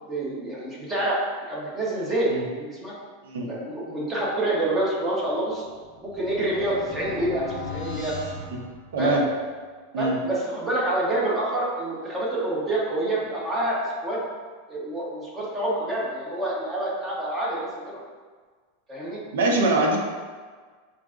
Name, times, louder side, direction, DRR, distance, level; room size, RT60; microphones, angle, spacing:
voice 1, 0.1-1.2 1.5-3.0 3.4-5.7 6.0-7.5 7.7-8.1 9.0-9.2 10.0-14.2 14.7-18.0 18.9-19.2, right 1 dB, 15° right, -5 dB, 0.9 m, -27 dB
sound 1, 5.4-9.4, left 3 dB, 55° right, 1.1 m, -38 dB
voice 2, 8.9-9.2 9.9-10.2 19.3-20.0, right 2 dB, 90° right, 1 dB, 0.6 m, -22 dB
5.6 x 2.5 x 2.4 m, 1.5 s
supercardioid pair, 140°, 0 cm